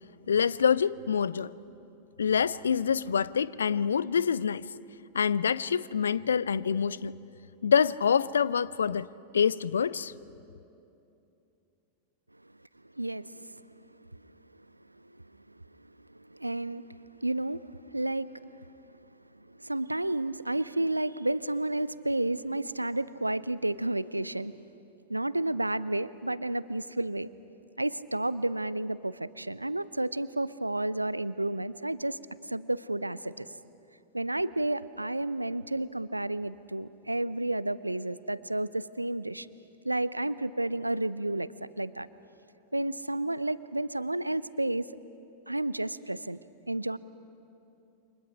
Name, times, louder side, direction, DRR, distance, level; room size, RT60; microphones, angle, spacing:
voice 1, 0.3-1.5 2.2-4.7 5.1-7.1 7.6-9.1 9.3-10.1, left 7 dB, 70° left, 0.4 m, -26 dB
voice 2, 13.0-13.6 14.1-14.4 15.0-18.7 19.4-24.6 25.1-27.3 27.8-32.2 32.4-33.5 34.1-39.5 39.8-42.1 42.7-44.9 45.5-46.4 46.7-47.0, right 1 dB, 85° right, 0.5 m, -31 dB
29.0 x 25.5 x 5.1 m
figure-of-eight pair, 90°, 0 cm